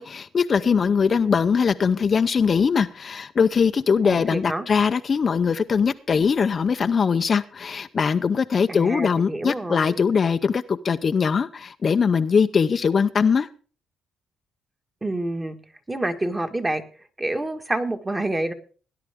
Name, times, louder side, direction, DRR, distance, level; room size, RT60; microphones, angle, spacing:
voice 1, 0.0-13.5, left 6 dB, 45° left, 0.7 m, -21 dB
voice 2, 4.0-4.7 8.7-10.0 15.0-15.6 15.9-16.8 17.2-18.5, right 1 dB, 15° right, 1.7 m, -27 dB
18.5 x 10.5 x 3.6 m
cardioid pair, 90°, 0 cm